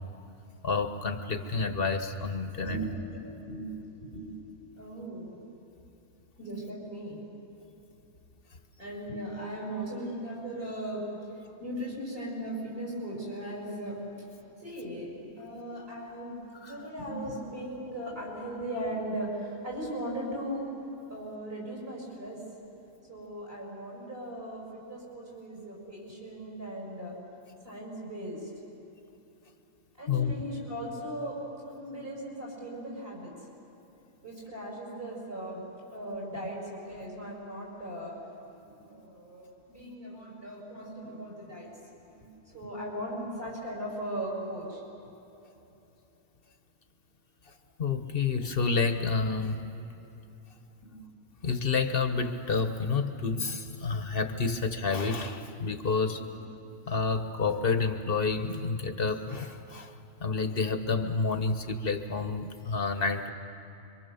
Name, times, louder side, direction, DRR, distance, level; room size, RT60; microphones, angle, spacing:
voice 1, 0.6-2.8 16.6-16.8 30.1-30.3 47.8-49.6 51.4-56.3 56.9-59.9 60.2-63.3, left 4 dB, 45° left, 7 dB, 1.4 m, -29 dB
voice 2, 2.6-3.8 4.0-4.3 4.8-5.3 6.4-7.2 8.8-11.2 11.6-14.1 14.6-16.4 16.6-20.6 21.1-22.4 23.1-27.1 27.6-28.4 30.0-31.4 31.7-33.3 34.2-35.6 35.9-38.1 38.6-41.7 42.1-44.8 50.8-51.0 56.3-56.4, right 1 dB, 50° right, -3 dB, 7.6 m, -38 dB
26.5 x 24.5 x 7.1 m, 3.0 s
omnidirectional pair, 1.4 m